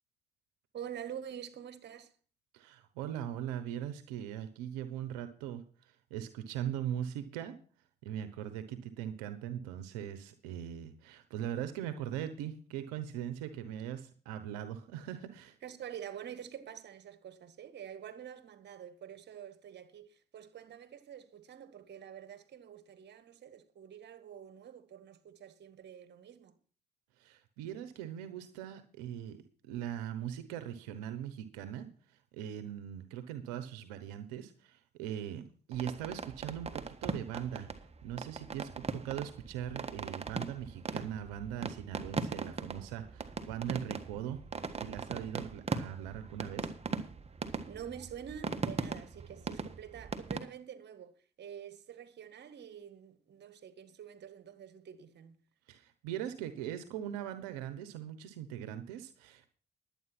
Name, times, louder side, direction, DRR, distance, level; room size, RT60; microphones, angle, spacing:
voice 1, 0.7-2.1 15.6-26.6 47.6-55.4, right 9 dB, 55° right, 1.6 m, -47 dB
voice 2, 2.5-7.5 8.0-15.6 27.2-29.4 29.6-37.7 38.0-44.4 44.8-46.7 55.7-59.6, right 10 dB, 90° right, 1.0 m, -40 dB
sound 1, 35.7-50.4, right 4 dB, 30° right, 1.5 m, -39 dB
11.0 x 8.8 x 5.9 m
hypercardioid pair, 60°, 20 cm